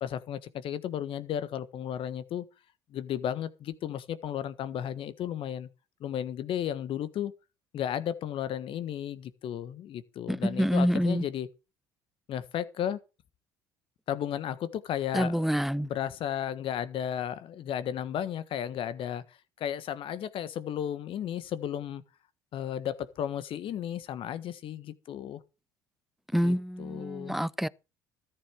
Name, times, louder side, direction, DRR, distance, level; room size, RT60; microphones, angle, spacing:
voice 1, 0.0-2.4 2.9-5.7 6.0-7.3 7.7-11.5 12.3-13.0 14.1-15.5 15.8-19.2 19.6-22.0 22.5-25.4 26.3-27.4, left 10 dB, 55° left, 1.4 m, -34 dB
voice 2, 10.3-11.2 15.1-15.9 26.3-27.7, equal, ahead, 0.6 m, -27 dB
14.0 x 10.5 x 4.8 m
hypercardioid pair, 65°, 11 cm